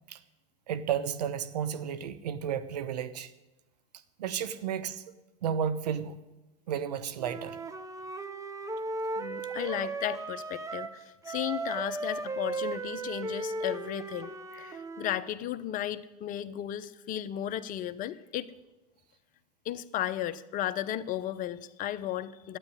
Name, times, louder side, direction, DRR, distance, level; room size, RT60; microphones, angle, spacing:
voice 1, 0.7-3.3 4.2-5.0 5.4-6.2 6.7-7.6 9.6-9.7, right 8 dB, 85° right, 14 dB, 1.1 m, -32 dB
Wind instrument woodwind instrument, 7.2-11.0 11.2-15.3, right 3 dB, 15° right, 1.1 m, -36 dB
voice 2, 9.2-18.5 19.6-22.6, left 12 dB, 40° left, 13 dB, 0.8 m, -35 dB
12.5 x 9.1 x 9.8 m, 1.0 s
hypercardioid pair, 105°, 20 cm